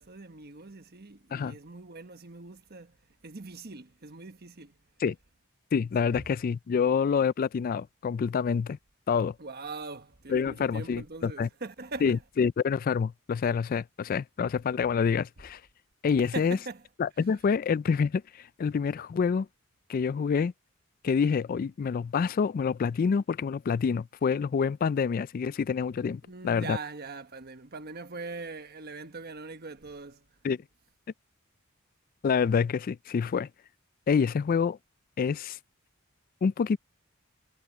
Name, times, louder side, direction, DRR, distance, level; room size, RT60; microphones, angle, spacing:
voice 1, 0.0-3.0 3.2-4.8 6.0-6.2 9.4-12.2 16.2-16.8 26.2-30.2, right 3 dB, 50° right, 1.3 m, -42 dB
voice 2, 5.7-8.8 9.1-9.3 10.3-11.5 12.0-15.6 16.0-16.6 17.0-18.2 18.6-19.5 19.9-20.5 21.0-26.8 30.4-30.6 32.2-33.5 34.1-34.8 35.2-35.6 36.4-36.8, left 6 dB, 40° left, 0.3 m, -27 dB
head